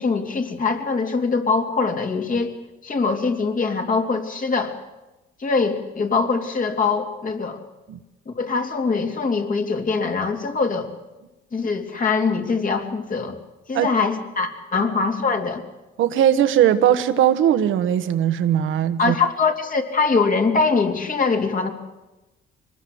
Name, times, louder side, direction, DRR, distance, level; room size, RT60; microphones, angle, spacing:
voice 1, 0.0-2.5 2.8-4.7 5.4-7.6 8.3-10.9 11.5-13.4 13.7-15.6 19.0-21.7, left 4 dB, 40° left, 4 dB, 3.2 m, -23 dB
voice 2, 16.0-19.1, right 10 dB, 80° right, 11 dB, 1.4 m, -19 dB
24.5 x 20.0 x 7.9 m, 1.0 s
cardioid pair, 90°, 20 cm